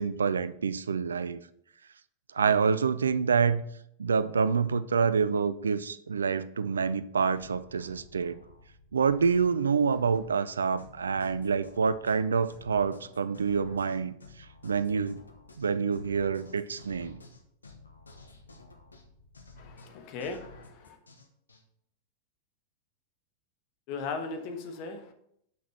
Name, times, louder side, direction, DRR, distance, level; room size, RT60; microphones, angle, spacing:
voice 1, 0.0-1.4 2.3-3.6 4.0-8.4 8.9-14.2 14.6-15.2 15.6-17.2, right 5 dB, 70° right, 14 dB, 0.4 m, -27 dB
sound 1, 7.4-21.6, left 2 dB, 75° left, 1.0 m, -52 dB
voice 2, 19.6-21.0 23.9-25.1, left 4 dB, 45° left, 6 dB, 1.2 m, -38 dB
6.0 x 6.0 x 5.5 m, 0.72 s
figure-of-eight pair, 90°, 0 cm